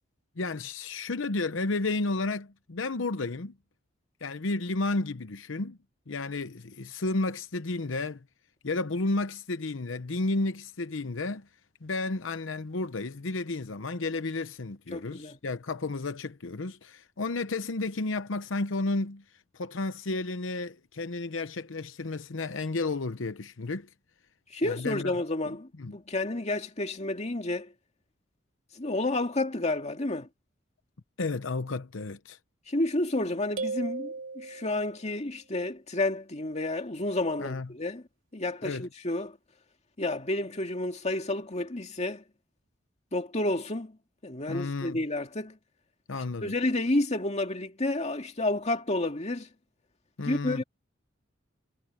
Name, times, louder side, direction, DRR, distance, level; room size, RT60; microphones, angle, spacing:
voice 1, 0.4-3.5 4.2-5.8 6.1-8.2 8.6-11.5 11.8-19.2 19.5-23.9 24.6-25.1 25.8-25.9 31.2-32.4 37.4-37.7 38.6-38.9 44.5-45.0 46.1-46.5 50.2-50.6, left 3 dB, 80° left, 0.9 m, -32 dB
voice 2, 14.9-15.4 24.5-27.7 28.7-30.3 32.7-38.0 38.3-39.4 40.0-42.2 43.1-44.0 44.2-45.6 46.4-49.5 50.2-50.6, left 2 dB, 35° left, 2.2 m, -30 dB
sound 1, 33.6-35.1, right 4 dB, 75° right, 4.9 m, -36 dB
head